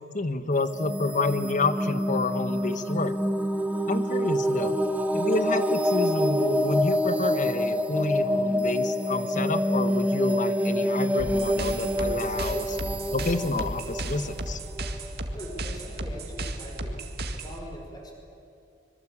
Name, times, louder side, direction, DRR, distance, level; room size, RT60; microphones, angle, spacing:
voice 1, 0.1-3.1 3.9-4.8 5.1-12.8 13.1-14.6, left 3 dB, 45° left, 11 dB, 1.3 m, -29 dB
sound 1, 0.6-15.2, equal, 10° right, 1.4 m, -27 dB
sound 2, 11.2-17.6, right 1 dB, 60° right, 2.0 m, -34 dB
voice 2, 15.3-17.0 17.3-18.1, equal, 20° left, 1 dB, 5.3 m, -41 dB
25.0 x 22.5 x 8.7 m, 2.7 s
head